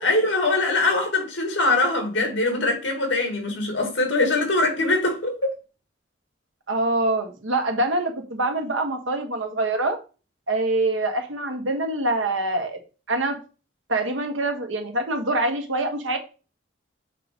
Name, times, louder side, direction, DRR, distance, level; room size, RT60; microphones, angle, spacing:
voice 1, 0.0-5.5, left 2 dB, 70° left, 2.3 m, -22 dB
voice 2, 6.7-10.0 10.5-12.8 13.1-13.4 13.9-16.2, right 2 dB, 85° right, 1.4 m, -25 dB
6.6 x 3.9 x 5.2 m
head